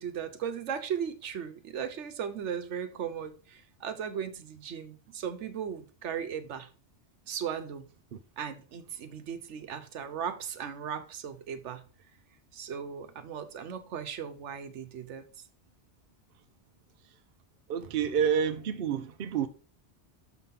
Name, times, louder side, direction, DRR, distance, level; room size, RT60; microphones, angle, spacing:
voice 1, 0.0-6.7 7.3-7.9 8.4-11.8 12.5-15.3, right 8 dB, 85° right, 1.1 m, -37 dB
voice 2, 17.7-19.5, right 7 dB, 60° right, 0.8 m, -28 dB
6.5 x 5.7 x 3.6 m
omnidirectional pair, 1.2 m